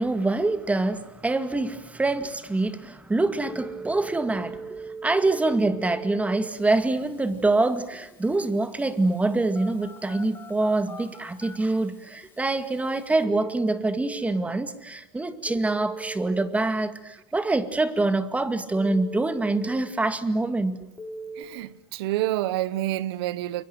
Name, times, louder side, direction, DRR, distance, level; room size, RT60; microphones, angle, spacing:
voice 1, 0.0-20.9, right 2 dB, 10° right, 2.0 m, -25 dB
Telephone, 3.4-14.2 15.5-16.5 18.7-19.8 21.0-21.4, right 3 dB, 15° left, 5.5 m, -40 dB
voice 2, 21.4-23.6, right 15 dB, 70° right, 1.2 m, -28 dB
29.0 x 23.5 x 7.8 m
supercardioid pair, 115°, 14 cm